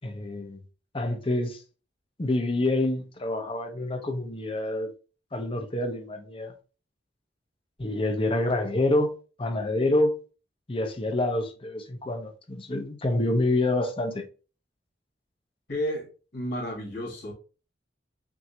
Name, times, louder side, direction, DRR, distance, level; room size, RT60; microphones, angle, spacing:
voice 1, 0.0-0.6 0.9-1.6 2.2-4.9 5.3-6.5 7.8-9.1 9.4-10.2 10.7-14.3, left 2 dB, 30° left, 0.8 m, -27 dB
voice 2, 15.7-17.3, equal, 65° left, 2.2 m, -32 dB
6.1 x 2.7 x 2.8 m
head